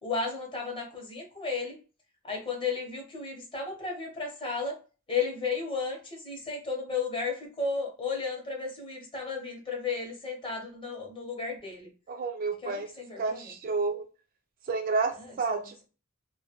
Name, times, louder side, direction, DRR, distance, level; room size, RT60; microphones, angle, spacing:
voice 1, 0.0-1.8 2.2-4.8 5.1-11.9 12.6-13.5 15.2-15.8, left 4 dB, 25° left, 1 dB, 0.7 m, -34 dB
voice 2, 12.1-12.9 13.2-14.0 14.7-15.8, right 4 dB, 40° right, 4 dB, 0.3 m, -30 dB
2.2 x 2.2 x 2.8 m, 0.34 s
head